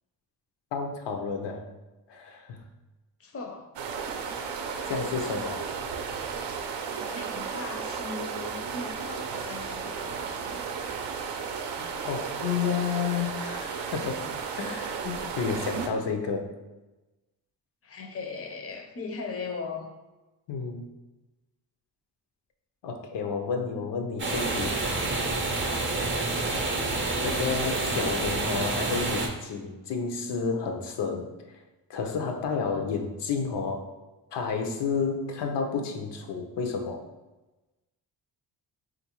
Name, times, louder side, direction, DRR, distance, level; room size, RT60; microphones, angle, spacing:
voice 1, 0.7-1.7 2.1-2.6 4.4-4.5 4.9-5.7 11.8-14.2 14.6-16.5 20.5-20.8 22.8-24.7 27.2-31.3 31.9-33.9 34.3-37.0, left 5 dB, 80° left, 4 dB, 0.6 m, -31 dB
voice 2, 3.2-3.7 7.1-10.4 17.8-19.9, left 4 dB, 35° left, 3 dB, 0.5 m, -38 dB
sound 1, 3.8-15.9, right 6 dB, 85° right, 0.5 m, -34 dB
sound 2, 24.2-29.3, right 2 dB, 30° right, 0.5 m, -28 dB
3.8 x 2.5 x 2.9 m, 1.1 s
wide cardioid pair, 135°, 41 cm